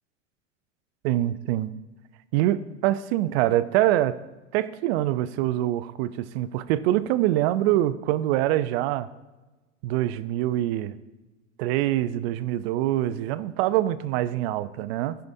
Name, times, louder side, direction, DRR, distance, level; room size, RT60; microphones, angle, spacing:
voice 1, 1.0-1.7 2.3-4.2 4.5-9.1 9.8-10.9 11.6-15.2, right 14 dB, 50° right, 15 dB, 0.5 m, -24 dB
14.0 x 5.7 x 2.7 m, 1.1 s
hypercardioid pair, 95°, 39 cm